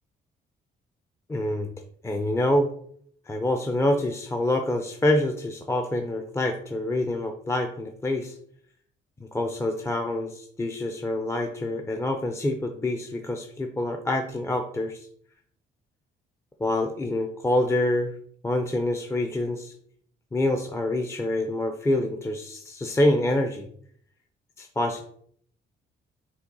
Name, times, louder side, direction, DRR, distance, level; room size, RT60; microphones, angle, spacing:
voice 1, 1.3-1.7 2.0-2.7 3.3-8.4 9.3-15.1 16.6-18.1 18.4-19.7 20.3-23.7 24.6-25.0, left 1 dB, 15° left, 4 dB, 0.5 m, -26 dB
5.6 x 2.2 x 3.9 m, 0.62 s
cardioid pair, 90°, 20 cm